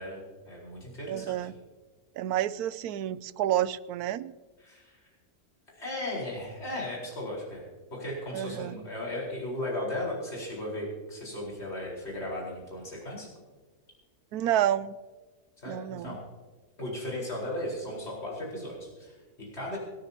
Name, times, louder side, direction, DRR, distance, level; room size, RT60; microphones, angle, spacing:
voice 1, 0.0-1.5 4.6-5.0 5.7-7.6 7.9-13.3 15.6-16.2 16.8-19.8, left 1 dB, 45° left, -4 dB, 4.9 m, -36 dB
voice 2, 1.1-1.5 2.2-4.3 8.3-8.8 14.3-15.0 15.7-16.2, right 12 dB, 80° right, 16 dB, 1.1 m, -29 dB
26.5 x 10.0 x 2.9 m, 1.4 s
omnidirectional pair, 1.6 m